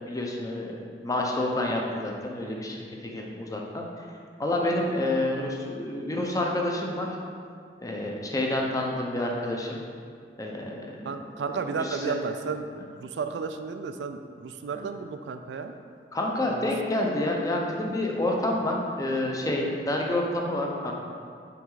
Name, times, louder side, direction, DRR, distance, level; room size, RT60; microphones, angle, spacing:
voice 1, 0.1-0.8 1.0-4.1 4.4-7.1 7.8-9.8 10.4-11.1 11.8-12.2 16.1-20.9, left 1 dB, 20° left, 0 dB, 0.6 m, -28 dB
voice 2, 11.1-15.7 16.5-16.7, right 5 dB, 75° right, 8 dB, 0.3 m, -33 dB
5.7 x 4.2 x 3.8 m, 2.2 s
head